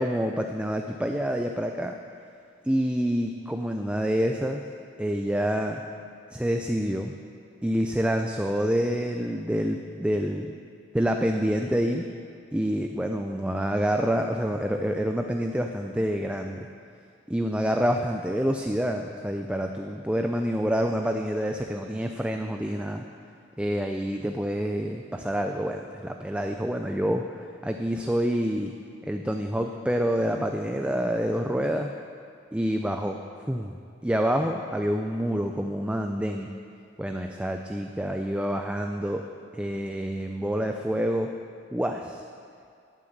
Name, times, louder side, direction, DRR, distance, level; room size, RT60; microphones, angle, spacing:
voice 1, 0.0-2.0 2.6-4.7 5.0-5.8 6.3-7.1 7.6-10.5 10.9-12.0 12.5-16.7 17.3-23.0 23.6-28.7 29.0-31.9 32.5-33.2 33.5-33.7 34.0-36.5 37.0-39.3 39.5-41.3 41.7-42.3, equal, 5° right, 4 dB, 0.4 m, -27 dB
12.0 x 9.1 x 7.9 m, 2.3 s
head